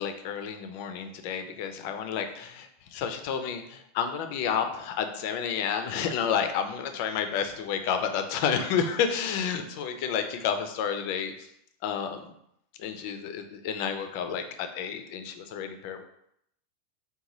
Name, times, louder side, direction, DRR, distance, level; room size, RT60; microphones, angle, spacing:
voice 1, 0.0-11.5 11.8-12.3 12.8-16.0, left 7 dB, 45° left, 7 dB, 0.3 m, -30 dB
3.9 x 2.2 x 3.0 m, 0.75 s
supercardioid pair, 170°, 0 cm